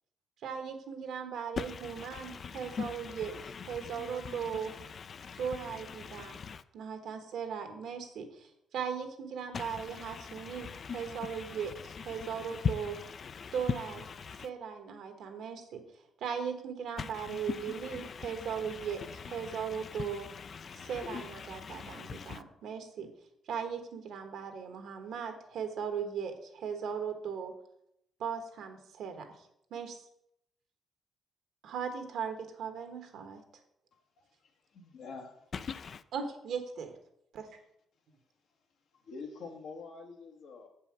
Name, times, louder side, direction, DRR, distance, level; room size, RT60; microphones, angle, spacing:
voice 1, 0.4-4.7 5.4-6.4 6.7-12.9 13.5-14.0 14.4-15.8 16.2-20.3 20.7-23.1 23.5-27.5 28.2-29.3 29.7-30.0 31.6-33.4 36.1-36.9 37.3-37.5, right 7 dB, 75° right, 1.3 m, -38 dB
voice 2, 1.6-6.6 9.5-13.8 14.1-14.5 17.0-22.4 35.5-36.0, left 6 dB, 50° left, 0.4 m, -41 dB
voice 3, 33.9-35.5 38.9-40.7, left 4 dB, 75° left, 1.4 m, -47 dB
7.1 x 5.5 x 5.9 m
cardioid pair, 90°, 0 cm